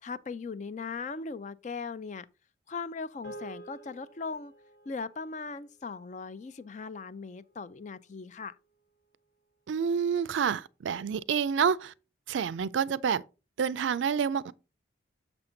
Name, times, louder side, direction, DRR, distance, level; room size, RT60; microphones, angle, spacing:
voice 1, 0.0-2.3 2.7-4.5 4.9-8.6, left 4 dB, 40° left, 0.4 m, -39 dB
sound 1, 3.2-7.8, right 1 dB, 60° left, 1.6 m, -51 dB
voice 2, 9.7-11.9 12.3-13.2 13.6-14.5, right 7 dB, 75° right, 0.4 m, -28 dB
6.9 x 5.8 x 3.8 m
head